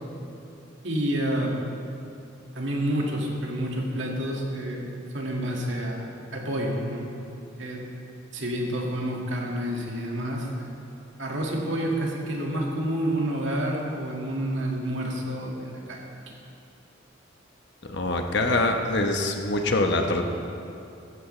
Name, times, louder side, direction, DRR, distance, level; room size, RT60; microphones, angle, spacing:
voice 1, 0.8-1.5 2.5-6.1 6.3-7.1 7.6-7.8 8.3-10.7 11.2-16.0 16.3-16.4, right 1 dB, 70° right, -1 dB, 2.1 m, -29 dB
voice 2, 17.8-20.2, left 2 dB, 60° left, 4 dB, 1.1 m, -24 dB
15.0 x 14.0 x 3.3 m, 2.6 s
head